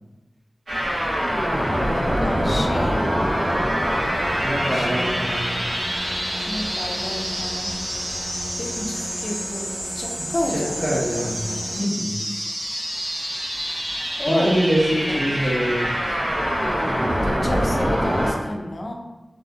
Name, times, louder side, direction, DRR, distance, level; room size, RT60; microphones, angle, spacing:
sound 1, 0.7-18.3, equal, 85° right, 0.9 m, -25 dB
voice 1, 2.2-3.1 4.4-5.1 6.5-7.7 8.6-9.7 9.9-10.9 14.2-14.8 15.1-15.4 17.2-18.9, left 1 dB, 60° left, 1 dB, 0.4 m, -30 dB
sound 2, 3.8-11.8, equal, 10° right, 0.6 m, -36 dB
voice 2, 4.4-5.6 10.2-11.4 11.8-12.1 14.2-15.9, equal, 60° right, -7 dB, 1.1 m, -24 dB
2.6 x 2.6 x 2.4 m, 1.1 s
wide cardioid pair, 50°, 0 cm